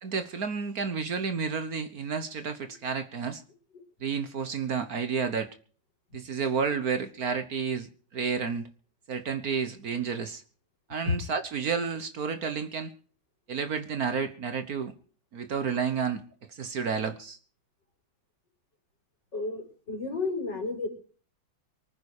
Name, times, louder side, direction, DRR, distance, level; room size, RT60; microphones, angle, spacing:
voice 1, 0.0-3.4 4.0-5.5 6.1-8.7 9.1-10.4 10.9-12.9 13.5-14.9 15.3-16.2 16.5-17.4, right 6 dB, 55° right, 10 dB, 1.5 m, -31 dB
voice 2, 19.3-20.9, left 3 dB, 65° left, 3 dB, 4.8 m, -32 dB
24.5 x 9.8 x 4.8 m, 0.43 s
omnidirectional pair, 2.1 m